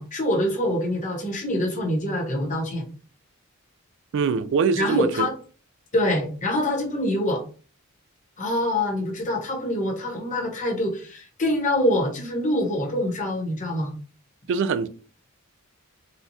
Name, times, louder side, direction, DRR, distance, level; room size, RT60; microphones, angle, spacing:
voice 1, 0.0-2.8 4.7-5.3 5.9-7.4 8.4-13.9, left 1 dB, 35° left, 1.1 m, -25 dB
voice 2, 4.1-5.3 14.5-14.9, right 5 dB, 55° right, 0.3 m, -23 dB
4.3 x 2.3 x 2.7 m
head